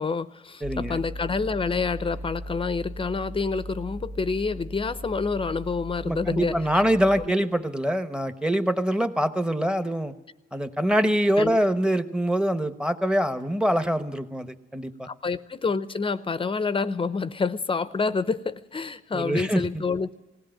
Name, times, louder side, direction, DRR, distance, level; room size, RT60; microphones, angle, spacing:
voice 1, 0.0-6.5 11.4-11.6 15.1-20.2, left 4 dB, 25° left, 14 dB, 0.7 m, -28 dB
voice 2, 0.6-1.0 6.0-10.1 10.5-15.1 19.1-19.8, equal, 5° right, 9 dB, 1.1 m, -24 dB
sound 1, 0.6-7.3, equal, 80° right, 1.8 m, -38 dB
19.0 x 17.0 x 9.0 m, 1.0 s
cardioid pair, 90°, 20 cm